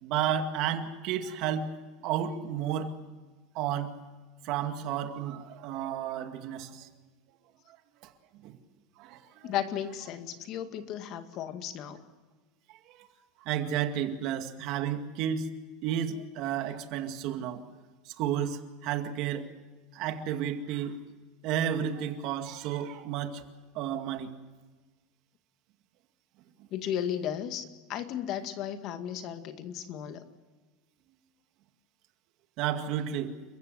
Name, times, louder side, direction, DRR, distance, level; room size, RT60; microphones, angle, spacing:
voice 1, 0.0-1.7 2.0-2.9 3.6-4.0 4.4-6.9 8.4-8.5 9.0-9.5 12.9-13.1 13.4-15.5 15.8-17.6 18.1-19.5 19.9-21.0 21.4-23.4 23.7-24.3 32.6-33.3, right 9 dB, 50° right, 7 dB, 2.1 m, -32 dB
voice 2, 9.4-12.0 26.7-30.3, left 10 dB, 45° left, 8 dB, 2.0 m, -35 dB
29.5 x 15.0 x 8.1 m, 1.3 s
supercardioid pair, 150°, 0 cm